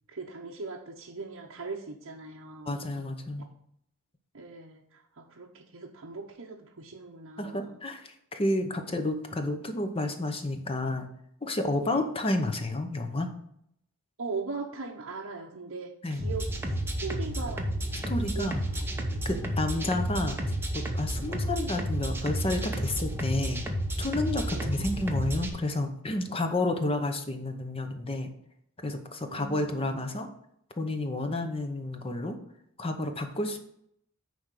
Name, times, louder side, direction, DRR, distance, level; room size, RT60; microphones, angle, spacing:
voice 1, 0.1-2.7 4.3-7.7 11.9-12.0 14.2-16.8 17.0-17.7 18.1-19.2 19.7-19.8 21.2-21.4 24.5-24.7 29.3-30.0, right 4 dB, 65° right, -1 dB, 0.8 m, -40 dB
voice 2, 2.7-3.4 7.4-11.1 11.4-13.3 16.0-16.3 18.1-18.6 19.2-20.4 20.7-23.6 24.0-28.3 28.8-30.3 30.8-32.4 32.8-33.6, left 2 dB, 25° left, 6 dB, 0.8 m, -30 dB
sound 1, 16.2-25.5, right 1 dB, 10° right, 0.9 m, -31 dB
9.6 x 3.5 x 6.6 m, 0.72 s
head